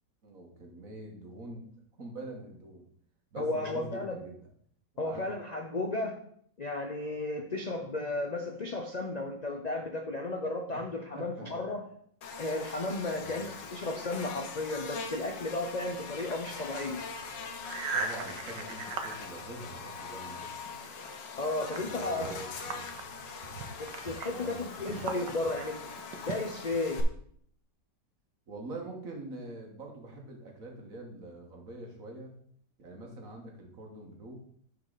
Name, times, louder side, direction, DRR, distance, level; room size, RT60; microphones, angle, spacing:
voice 1, 0.2-1.6 2.0-2.9 3.3-4.4 4.9-5.3 10.7-10.8 11.1-11.6 13.1-13.5 17.9-20.6 21.9-22.9 24.3-24.6 28.5-32.3 32.8-34.3, right 2 dB, 50° right, 1 dB, 1.8 m, -44 dB
voice 2, 3.4-4.2 5.0-6.2 6.6-11.8 12.4-17.0 21.4-22.3 23.8-25.9 26.3-27.0, left 2 dB, 70° left, 3 dB, 0.4 m, -34 dB
Buzz, 12.2-27.0, left 5 dB, 90° left, 1.6 m, -42 dB
sound 1, 17.0-20.3 20.6-26.8, right 4 dB, 85° right, 1.6 m, -40 dB
9.4 x 4.8 x 4.0 m, 0.63 s
omnidirectional pair, 1.9 m